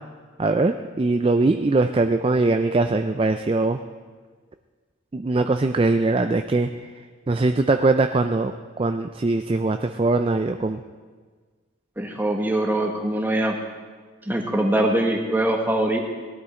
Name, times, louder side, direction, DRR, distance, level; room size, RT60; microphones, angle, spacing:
voice 1, 0.4-3.8 5.1-6.7 7.3-10.8, right 3 dB, 25° right, 7 dB, 0.4 m, -21 dB
voice 2, 12.0-13.5 14.3-16.0, right 1 dB, 10° right, 2 dB, 1.4 m, -22 dB
18.5 x 12.5 x 4.4 m, 1.5 s
head